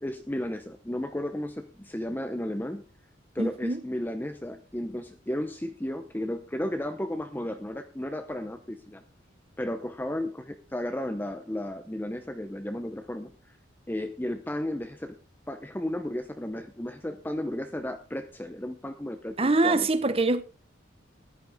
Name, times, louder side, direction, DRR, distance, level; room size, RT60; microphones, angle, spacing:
voice 1, 0.0-2.8 3.3-9.0 9.6-13.3 13.9-15.2 15.5-19.9, left 1 dB, 10° left, 0.7 m, -34 dB
voice 2, 3.4-3.8 19.4-20.4, right 2 dB, 30° right, 1.0 m, -24 dB
14.5 x 11.0 x 3.6 m
head